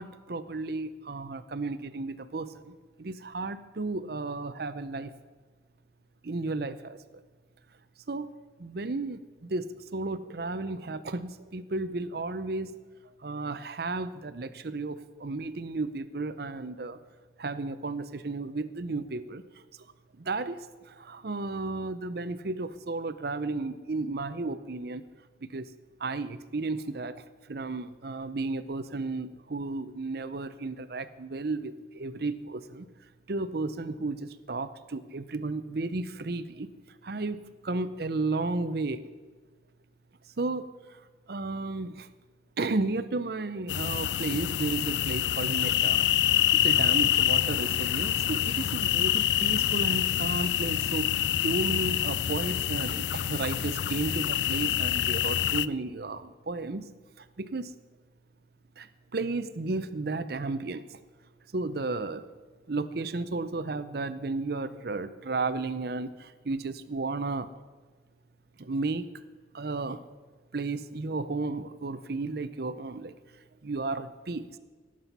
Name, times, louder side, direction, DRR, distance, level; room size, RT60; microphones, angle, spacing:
voice 1, 0.0-5.1 6.2-7.0 8.1-8.3 8.6-12.8 13.2-17.0 17.4-19.4 20.2-25.0 25.4-25.7 26.0-27.2 27.5-32.9 33.3-36.7 37.0-37.4 37.6-39.0 40.4-40.7 41.3-42.1 42.6-46.0 46.5-56.9 57.2-57.7 58.8-60.8 61.5-62.2 62.7-67.5 68.6-69.1 69.5-70.0 70.5-73.1 73.6-74.5, right 3 dB, 55° right, 13 dB, 0.6 m, -33 dB
sound 1, 43.7-55.7, left 11 dB, 70° left, 0.3 m, -26 dB
17.5 x 7.6 x 5.5 m, 1.4 s
head